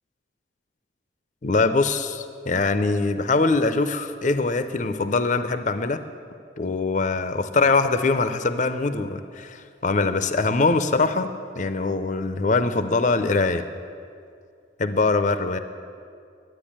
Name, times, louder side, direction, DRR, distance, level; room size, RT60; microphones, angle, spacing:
voice 1, 1.4-6.0 6.6-11.3 11.6-13.6 14.8-15.6, left 3 dB, 40° left, 10 dB, 0.5 m, -23 dB
12.0 x 9.5 x 8.6 m, 2.4 s
head